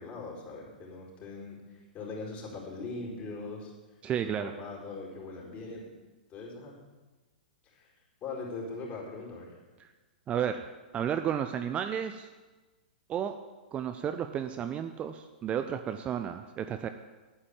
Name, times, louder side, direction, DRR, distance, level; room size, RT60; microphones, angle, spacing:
voice 1, 0.0-1.6 1.9-3.7 4.2-5.9 6.3-6.7 7.7-7.9 8.2-9.5, left 3 dB, 30° left, -3 dB, 4.7 m, -40 dB
voice 2, 4.0-4.5 9.8-9.9 10.3-12.3 13.1-13.4 13.7-16.9, right 9 dB, 25° right, 8 dB, 0.7 m, -32 dB
9.5 x 8.6 x 8.8 m, 1.2 s
figure-of-eight pair, 110°, 5 cm